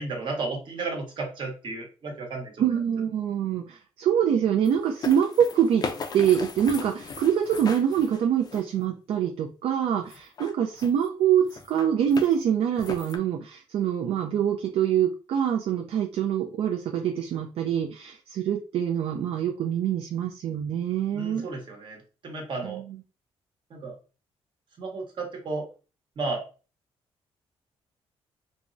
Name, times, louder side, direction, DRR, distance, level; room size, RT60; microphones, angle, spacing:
voice 1, 0.0-2.5 21.1-22.8 23.7-23.9 24.8-25.7 26.2-26.4, right 3 dB, 45° right, 1 dB, 1.0 m, -33 dB
voice 2, 2.6-5.8 6.1-21.5 22.6-23.0, right 9 dB, 65° right, 3 dB, 0.4 m, -25 dB
sound 1, 4.6-8.8 10.1-11.1 11.4-12.3 12.8-13.2, left 5 dB, 35° left, 0.4 m, -37 dB
3.5 x 2.0 x 2.5 m, 0.35 s
cardioid pair, 120°, 11 cm